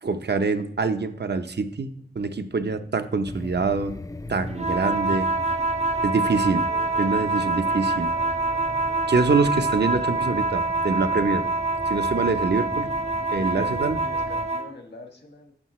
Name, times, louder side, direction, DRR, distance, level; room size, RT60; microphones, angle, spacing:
voice 1, 0.0-4.0 4.3-5.3 6.0-6.7 7.0-8.1 8.4-11.4 11.9-12.9 13.3-14.0, right 4 dB, 75° right, 8 dB, 0.7 m, -25 dB
sound 1, 3.2-14.5, left 2 dB, 20° left, 0.3 m, -39 dB
sound 2, 4.5-14.7, right 3 dB, 40° right, 0.6 m, -26 dB
voice 2, 13.3-15.5, left 2 dB, 85° left, 4 dB, 1.5 m, -42 dB
11.5 x 7.3 x 3.1 m, 0.68 s
wide cardioid pair, 60°, 17 cm